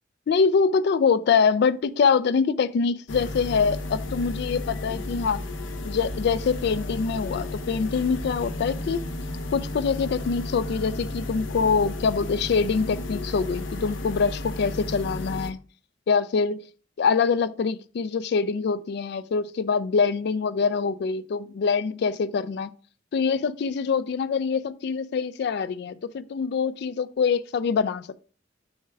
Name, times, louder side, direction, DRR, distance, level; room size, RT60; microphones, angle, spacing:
voice 1, 0.3-5.4 5.8-9.0 9.5-15.6 16.1-16.6 17.0-22.7 23.1-28.2, left 5 dB, 60° left, 0.3 m, -24 dB
sound 1, 3.1-15.5, left 2 dB, 85° left, 0.8 m, -33 dB
6.4 x 3.4 x 5.7 m
head